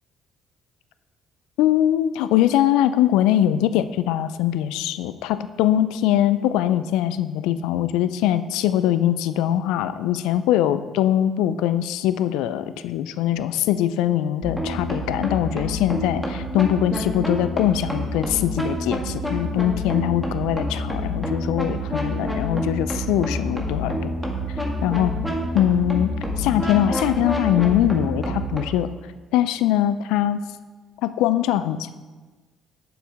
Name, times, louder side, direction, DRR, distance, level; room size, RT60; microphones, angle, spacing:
voice 1, 1.6-24.1 24.8-25.1 25.5-28.9 29.3-30.5 31.0-31.9, left 12 dB, 70° left, 13 dB, 0.4 m, -22 dB
sound 1, 14.4-28.6, equal, 5° left, 2.1 m, -28 dB
9.1 x 7.0 x 3.6 m, 1.3 s
hypercardioid pair, 45°, 0 cm